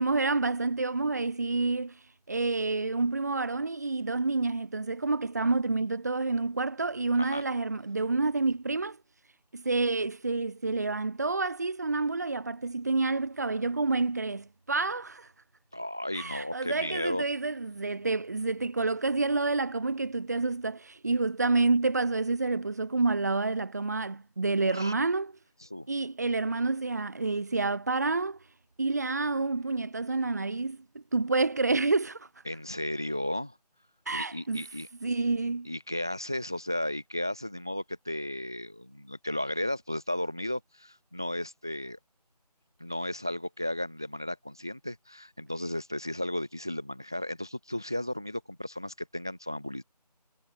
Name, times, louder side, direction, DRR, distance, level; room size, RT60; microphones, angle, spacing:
voice 1, 0.0-2.0 2.3-9.0 9.5-15.3 16.1-25.3 25.9-28.4 28.8-32.3 34.1-34.6 35.0-35.7, right 3 dB, 25° right, 4.3 m, -28 dB
voice 2, 15.7-17.2 24.7-24.9 25.6-25.9 32.4-33.6 34.1-34.9 35.6-42.0 42.8-49.8, left 1 dB, 5° right, 1.1 m, -34 dB
figure-of-eight pair, 175°, 21 cm